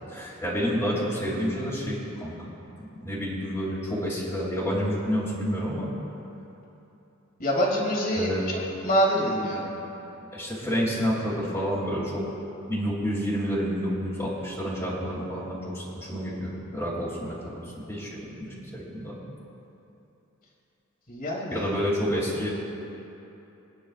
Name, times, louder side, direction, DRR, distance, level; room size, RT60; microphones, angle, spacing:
voice 1, 0.1-2.3 2.8-5.9 8.1-8.4 10.3-12.2 12.7-17.6 17.9-19.1 21.5-22.5, equal, 10° left, -10 dB, 3.1 m, -29 dB
voice 2, 7.4-8.3 8.8-9.7 21.1-21.7, equal, 45° left, -3 dB, 2.7 m, -25 dB
25.5 x 10.0 x 2.5 m, 3.0 s
head